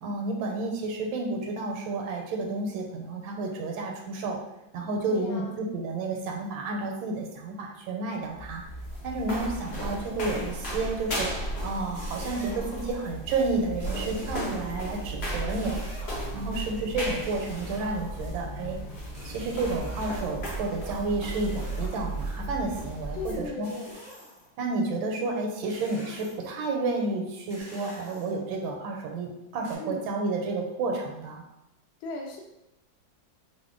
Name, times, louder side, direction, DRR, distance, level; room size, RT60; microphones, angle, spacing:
voice 1, 0.0-4.4 4.7-8.6 9.0-11.3 11.6-15.8 16.3-18.8 19.2-23.7 24.6-31.4, right 3 dB, 85° right, 1 dB, 1.4 m, -31 dB
voice 2, 5.0-5.7 23.1-24.0 29.8-30.2 32.0-32.4, left 2 dB, 90° left, 0 dB, 1.5 m, -37 dB
sound 1, 8.3-23.5, right 1 dB, 65° left, 0.6 m, -35 dB
sound 2, 11.9-13.1 13.8-15.0 15.4-16.4 17.2-18.4 19.1-20.6 21.2-22.4 23.6-24.5 25.7-26.6 27.5-28.6 29.6-29.8, equal, 5° left, 0.5 m, -46 dB
3.6 x 2.1 x 3.7 m, 0.87 s
omnidirectional pair, 2.2 m